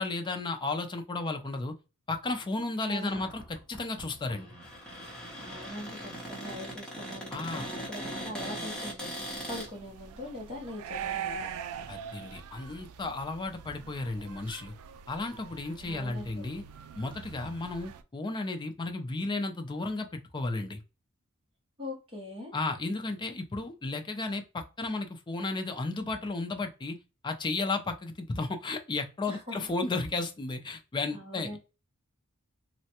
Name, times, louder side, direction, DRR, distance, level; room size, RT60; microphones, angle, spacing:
voice 1, 0.0-1.7 2.1-4.5 7.3-7.6 11.9-14.7 15.1-16.6 16.9-20.8 22.5-27.0 27.2-31.6, left 3 dB, 20° left, 5 dB, 0.4 m, -33 dB
voice 2, 2.8-3.2 5.4-11.4 15.8-16.4 21.8-22.5 29.3-29.7 31.1-31.6, left 1 dB, 25° right, -1 dB, 0.9 m, -42 dB
Cupboard open or close, 3.0-9.7, equal, 5° left, 0.9 m, -40 dB
sound 1, 9.2-18.0, right 7 dB, 75° right, 0.3 m, -42 dB
3.2 x 2.1 x 2.8 m, 0.30 s
head